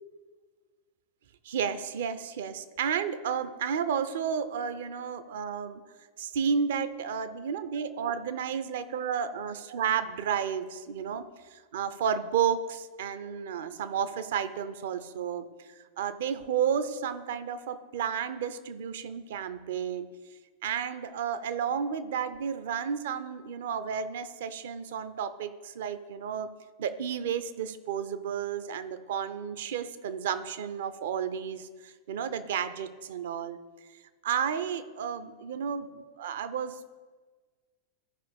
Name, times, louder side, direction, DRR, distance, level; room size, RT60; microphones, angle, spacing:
voice 1, 1.4-5.8 6.2-15.5 15.8-20.1 20.6-26.5 26.8-33.6 34.2-36.9, right 7 dB, 55° right, 12 dB, 0.6 m, -32 dB
15.0 x 5.3 x 3.5 m, 1.4 s
figure-of-eight pair, 90°, 0 cm